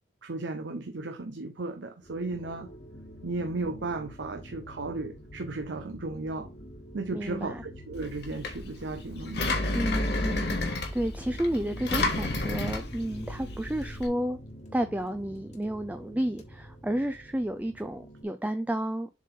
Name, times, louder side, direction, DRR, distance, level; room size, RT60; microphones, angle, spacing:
voice 1, 0.2-2.7 3.2-6.5 6.9-9.8, right 3 dB, 85° right, 0.8 m, -35 dB
sound 1, 2.0-18.2, equal, 40° left, 1.4 m, -46 dB
voice 2, 7.1-7.6 9.7-14.4 14.7-19.1, right 1 dB, 10° right, 0.4 m, -31 dB
Engine, 8.0-14.1, left 2 dB, 65° left, 1.6 m, -31 dB
7.4 x 3.9 x 3.8 m
head